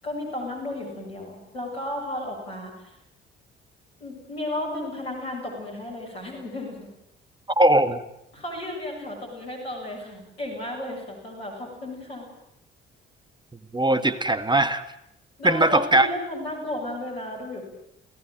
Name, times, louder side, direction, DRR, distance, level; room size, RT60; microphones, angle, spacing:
voice 1, 0.0-3.0 4.0-6.8 8.3-12.3 15.4-17.6, left 1 dB, 85° left, -3 dB, 7.5 m, -33 dB
voice 2, 7.6-8.0 13.7-14.8 15.4-16.1, right 1 dB, 15° right, 11 dB, 2.0 m, -20 dB
30.0 x 17.5 x 9.2 m, 0.82 s
figure-of-eight pair, 45°, 30 cm